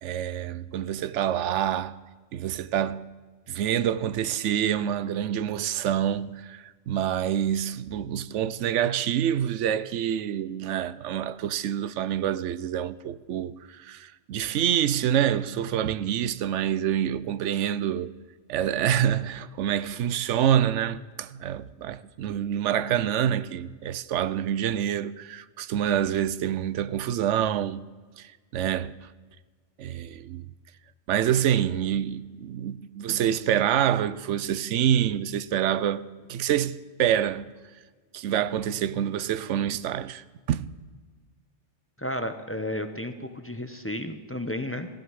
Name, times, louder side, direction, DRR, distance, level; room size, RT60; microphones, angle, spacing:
voice 1, 0.0-2.0 2.3-3.0 3.5-18.1 18.5-27.9 28.2-29.1 29.8-30.5 31.1-37.5 38.1-40.7, right 10 dB, 75° right, 0.9 m, -27 dB
voice 2, 42.0-44.9, left 1 dB, 15° left, 0.8 m, -32 dB
15.0 x 8.1 x 9.4 m
omnidirectional pair, 1.2 m